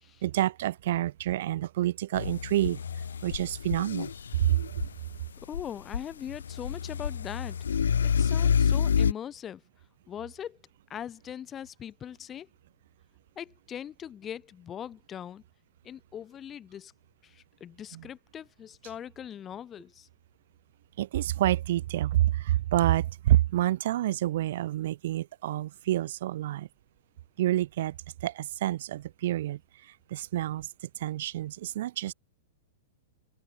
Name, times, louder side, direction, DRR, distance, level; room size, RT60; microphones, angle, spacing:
voice 1, 0.2-2.8 3.2-4.1 4.4-4.6 17.9-18.0 21.0-26.7 27.4-30.7 31.0-32.1, right 14 dB, 50° right, 2.2 m, -28 dB
sound 1, 2.1-5.1 5.5-9.1, left 7 dB, 65° left, 0.6 m, -28 dB
voice 2, 5.5-7.9 8.2-9.6 10.1-10.6 10.9-12.5 13.4-15.4 15.8-16.9 17.2-20.1, left 9 dB, 20° left, 3.0 m, -41 dB
figure-of-eight pair, 100°, 0 cm